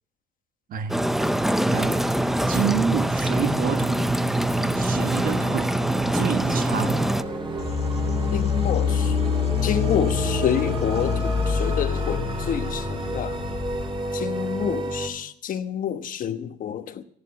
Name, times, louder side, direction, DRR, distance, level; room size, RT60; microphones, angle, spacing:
voice 1, 0.7-1.0 1.7-2.2 2.5-4.1 4.7-5.8 6.1-7.1, right 7 dB, 55° right, 1.5 m, -28 dB
sound 1, 0.9-7.2, right 1 dB, ahead, 0.6 m, -24 dB
sound 2, 1.2-15.1, right 2 dB, 30° right, 3.9 m, -32 dB
sound 3, 7.6-14.1, left 8 dB, 35° left, 1.5 m, -26 dB
voice 2, 8.3-9.2 9.6-13.4 14.1-17.0, left 9 dB, 55° left, 1.1 m, -28 dB
14.5 x 11.0 x 7.1 m
cardioid pair, 110°, 17 cm